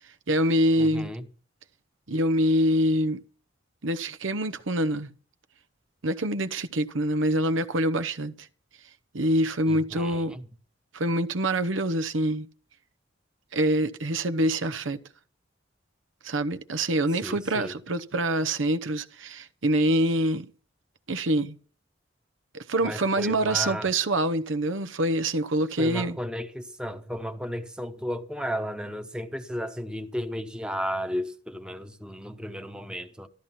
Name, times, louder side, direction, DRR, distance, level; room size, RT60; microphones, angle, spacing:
voice 1, 0.3-1.1 2.1-3.2 3.8-5.1 6.0-8.3 9.1-10.4 10.9-12.5 13.5-15.0 16.2-20.5 21.1-21.6 22.5-26.2, right 1 dB, 85° right, 0.9 m, -25 dB
voice 2, 0.8-1.2 9.7-10.4 17.1-17.8 22.8-23.9 25.8-33.3, equal, 5° right, 1.0 m, -34 dB
13.0 x 13.0 x 5.8 m
head